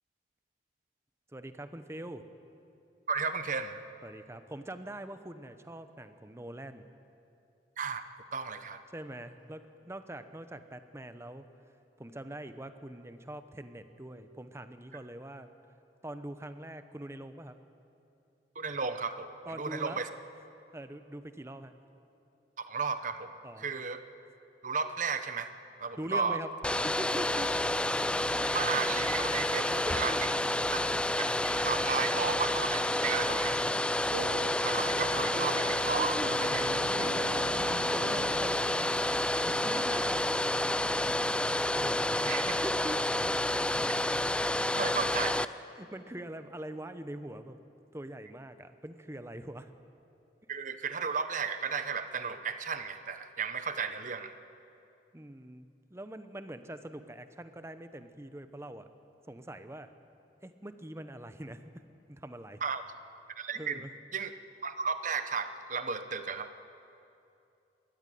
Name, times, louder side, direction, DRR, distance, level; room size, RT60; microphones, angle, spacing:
voice 1, 1.3-2.2 4.0-6.9 8.9-11.5 12.0-15.5 16.0-17.6 19.5-20.0 20.7-21.7 23.4-23.7 26.0-26.5 26.8-27.5 29.7-30.4 35.9-36.4 36.7-40.8 41.7-42.2 42.5-43.1 45.8-47.6 47.9-49.7 55.1-58.8 59.3-59.9 60.4-61.8 62.1-62.6 63.5-63.9, right 1 dB, 15° right, 10 dB, 0.9 m, -43 dB
voice 2, 3.1-3.8 7.8-8.0 8.3-8.8 18.5-19.3 19.6-20.1 22.6-23.3 23.6-24.0 24.6-25.5 25.8-26.4 28.4-30.3 30.7-30.8 31.2-33.7 34.6-36.6 42.2-42.5 44.7-45.5 50.5-54.4 62.6-62.8 63.4-63.8 64.1-64.3 64.6-66.5, right 5 dB, 45° right, 10 dB, 1.0 m, -34 dB
Domestic sounds home sounds, 26.6-45.4, left 1 dB, 5° left, 0.4 m, -29 dB
sound 1, 34.0-39.9, right 3 dB, 75° right, 1.3 m, -43 dB
21.0 x 14.0 x 9.3 m, 2.7 s
head